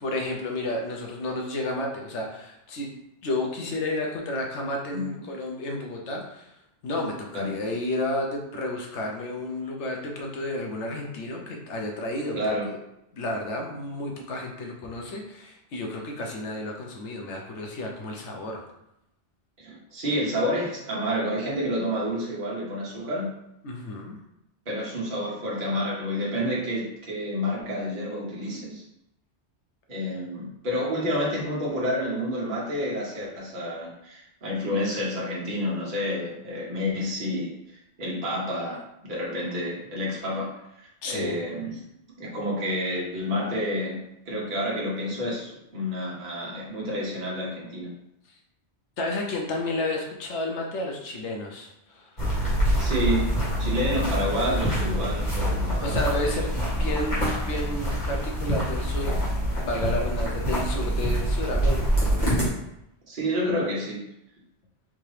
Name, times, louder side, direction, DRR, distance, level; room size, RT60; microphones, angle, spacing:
voice 1, 0.0-2.9 3.2-6.5 6.8-12.4 12.7-12.8 13.1-18.6 23.6-24.2 41.0-41.4 49.0-52.1 55.8-61.8, left 1 dB, 90° left, 1 dB, 1.1 m, -31 dB
voice 2, 12.3-12.7 19.6-23.3 24.7-28.8 29.9-37.5 38.0-40.5 41.0-41.8 42.2-44.0 44.3-47.9 52.8-53.3 53.6-56.0 63.1-64.0, equal, 50° right, -5 dB, 1.1 m, -29 dB
sound 1, 52.2-62.5, equal, 40° left, 1.4 m, -25 dB
3.6 x 2.8 x 3.2 m, 0.82 s
omnidirectional pair, 1.2 m